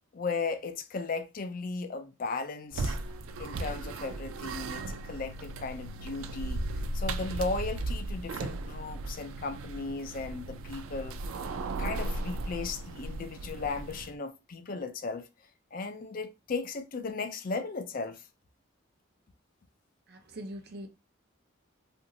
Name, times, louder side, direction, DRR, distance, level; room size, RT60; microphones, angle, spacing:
voice 1, 0.1-3.0 3.4-6.6 6.9-11.2 11.8-15.3 15.7-18.3, left 4 dB, 40° left, 0.4 m, -36 dB
sound 1, 2.7-14.1, right 2 dB, 90° right, 0.4 m, -36 dB
voice 2, 20.1-20.9, equal, 50° right, 0.6 m, -42 dB
2.9 x 2.5 x 2.7 m
head